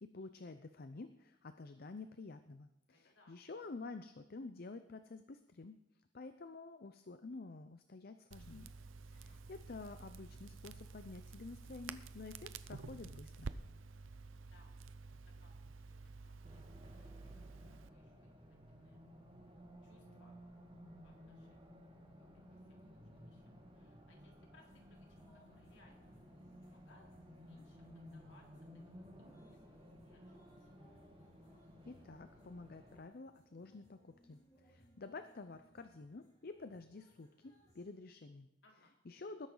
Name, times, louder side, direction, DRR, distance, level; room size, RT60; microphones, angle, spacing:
voice 1, 0.0-5.8 6.1-8.7 9.1-13.5 31.9-38.5 39.1-39.5, left 3 dB, 50° left, 10 dB, 0.6 m, -50 dB
voice 2, 2.9-3.4 9.1-9.4 14.3-14.7 15.2-16.0 16.2-19.0 19.8-20.4 21.0-21.8 22.2-26.2 26.6-27.1 27.4-28.7 28.9-30.7 38.6-39.0, left 2 dB, 65° left, 0 dB, 3.5 m, -70 dB
Crackle, 8.3-17.9, right 4 dB, 80° right, 0.7 m, -51 dB
Race car auto racing, 16.4-33.0, equal, 25° right, 2.1 m, -57 dB
sound 1, 24.5-37.9, equal, 20° left, 3.5 m, -68 dB
20.0 x 10.5 x 3.9 m, 0.93 s
head